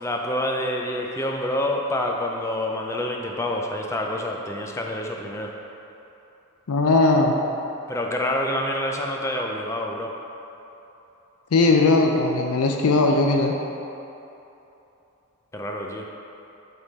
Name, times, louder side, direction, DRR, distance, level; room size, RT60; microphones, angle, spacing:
voice 1, 0.0-5.5 7.9-10.1 15.5-16.1, left 1 dB, 15° left, 1 dB, 0.4 m, -27 dB
voice 2, 6.7-7.3 11.5-13.5, left 3 dB, 80° left, 2 dB, 0.5 m, -19 dB
8.0 x 3.7 x 4.1 m, 3.0 s
head